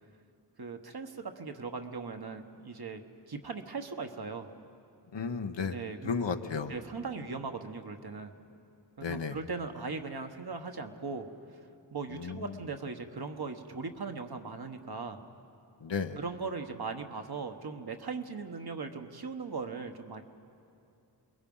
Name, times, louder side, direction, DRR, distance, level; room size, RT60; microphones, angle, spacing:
voice 1, 0.6-3.0 3.3-4.5 5.7-6.1 6.7-8.3 9.0-11.3 11.9-15.2 16.2-20.2, right 4 dB, 60° right, 5 dB, 1.3 m, -39 dB
voice 2, 5.1-5.7 6.0-6.7 9.0-9.4 12.1-12.6 15.8-16.2, left 5 dB, 90° left, 7 dB, 1.0 m, -33 dB
28.0 x 21.5 x 5.5 m, 2.7 s
wide cardioid pair, 80°, 42 cm